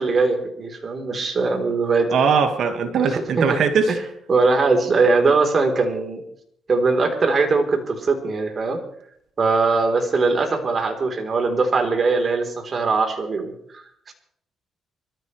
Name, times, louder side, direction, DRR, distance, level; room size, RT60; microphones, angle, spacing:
voice 1, 0.0-2.1 3.4-3.6 4.3-6.2 6.7-8.8 9.4-14.1, right 3 dB, 45° right, 3 dB, 3.7 m, -21 dB
voice 2, 2.1-4.0, right 6 dB, 70° right, 6 dB, 1.8 m, -20 dB
25.5 x 14.0 x 3.3 m, 0.69 s
cardioid pair, 90°, 0 cm